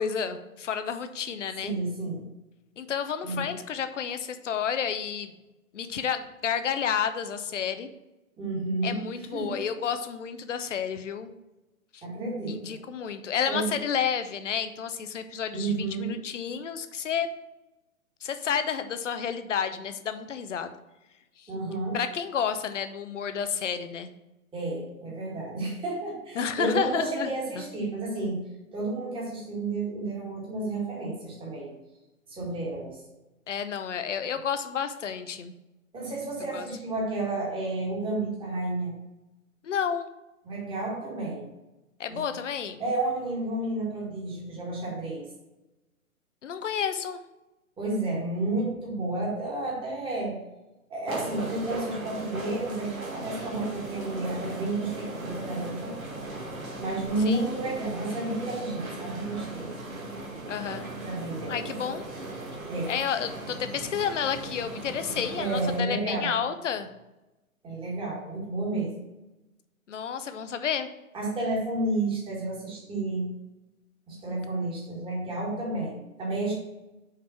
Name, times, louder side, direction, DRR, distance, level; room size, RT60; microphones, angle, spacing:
voice 1, 0.0-1.7 2.8-5.3 5.7-7.9 8.8-11.3 11.9-12.0 12.5-17.3 18.2-20.7 21.4-21.5 21.9-24.1 26.4-27.6 33.5-35.5 36.5-36.7 39.6-40.1 42.0-42.8 46.4-47.2 57.3-57.5 60.5-60.9 61.5-62.0 62.9-66.9 69.9-70.9, left 7 dB, 55° left, 9 dB, 0.8 m, -30 dB
voice 2, 1.6-2.2 3.2-3.5 8.4-9.0 9.3-9.6 12.0-12.8 13.5-13.8 15.5-16.1 21.5-22.0 24.5-28.4 28.7-31.7 32.3-33.0 35.9-38.9 40.4-41.5 42.1-42.2 42.8-45.3 47.8-50.4 50.9-55.9 56.8-59.7 61.1-61.7 62.7-63.0 65.4-66.4 67.6-69.0 71.1-73.3 74.1-76.5, right 2 dB, 10° right, -4 dB, 1.9 m, -31 dB
sound 1, 51.1-65.8, right 2 dB, 65° right, 2.1 m, -38 dB
5.9 x 4.8 x 5.6 m, 1.0 s
figure-of-eight pair, 120°, 43 cm